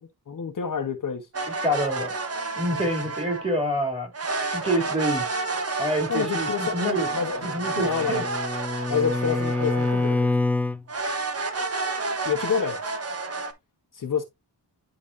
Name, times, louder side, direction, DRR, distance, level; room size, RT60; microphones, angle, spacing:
voice 1, 0.3-1.3 6.1-7.4 7.7-8.3 8.9-10.3 12.2-12.8 13.9-14.2, left 7 dB, 50° left, 1.2 m, -28 dB
sound 1, 1.3-3.6 4.1-10.3 10.9-13.5, right 3 dB, 35° right, 1.2 m, -30 dB
voice 2, 1.6-2.1 2.6-4.1 4.5-5.2 5.8-7.1 7.4-8.2, right 1 dB, 15° right, 3.1 m, -27 dB
Bowed string instrument, 7.4-10.8, left 2 dB, 5° left, 0.4 m, -26 dB
10.5 x 4.1 x 2.7 m
cardioid pair, 100°, 41 cm